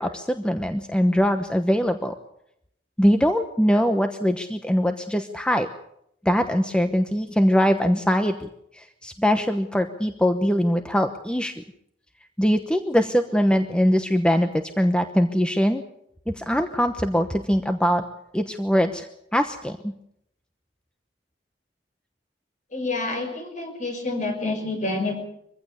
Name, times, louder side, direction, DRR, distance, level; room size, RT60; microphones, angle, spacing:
voice 1, 0.0-2.1 3.0-5.7 6.2-8.5 9.0-11.5 12.4-15.8 16.4-18.0 18.3-19.1 19.3-19.9, equal, 5° left, 7 dB, 1.0 m, -22 dB
voice 2, 22.7-25.2, left 2 dB, 45° left, 5 dB, 5.8 m, -28 dB
23.5 x 15.5 x 8.4 m, 0.76 s
head